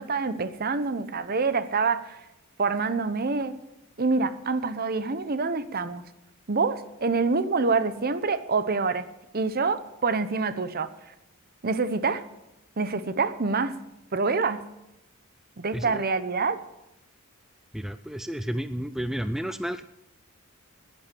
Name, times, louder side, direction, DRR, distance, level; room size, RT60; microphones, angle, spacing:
voice 1, 0.0-2.2 2.6-3.6 4.0-6.0 6.5-9.0 9.3-10.9 11.6-12.2 12.8-13.8 14.1-14.6 15.6-16.6, right 4 dB, 45° right, 13 dB, 0.9 m, -26 dB
voice 2, 15.7-16.0 17.7-19.8, equal, ahead, 11 dB, 0.4 m, -31 dB
10.5 x 10.5 x 8.4 m, 0.93 s
head